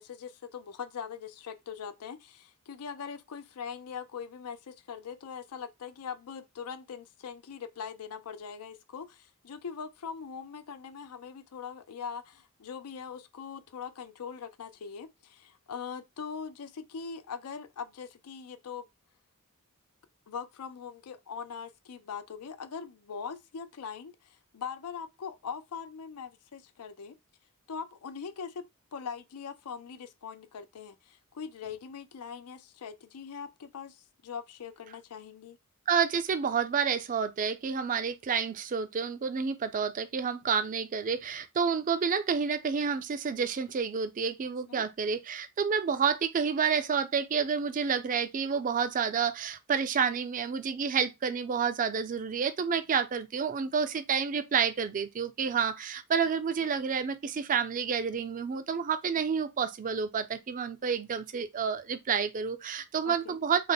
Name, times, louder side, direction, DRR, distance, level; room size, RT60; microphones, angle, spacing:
voice 1, 0.0-18.9 20.3-27.2 27.7-28.6 28.9-35.6 44.7-44.9 63.0-63.4, left 6 dB, 80° left, 0.5 m, -41 dB
voice 2, 35.9-63.7, right 6 dB, 35° right, 0.4 m, -29 dB
3.4 x 2.0 x 3.9 m
head